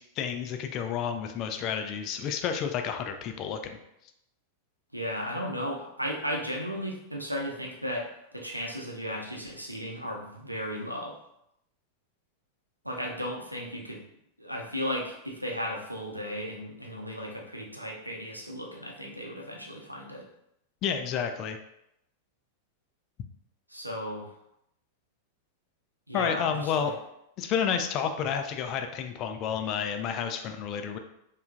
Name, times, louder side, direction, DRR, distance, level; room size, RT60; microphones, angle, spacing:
voice 1, 0.2-3.8 20.8-21.6 26.1-26.9 27.4-31.0, left 7 dB, 35° left, 6 dB, 0.4 m, -30 dB
voice 2, 4.9-8.1 8.3-11.1 12.8-14.0 14.4-20.2 23.7-24.3 26.1-26.9, equal, 90° right, -1 dB, 0.6 m, -35 dB
4.8 x 2.4 x 2.5 m, 0.80 s
figure-of-eight pair, 90°, 0 cm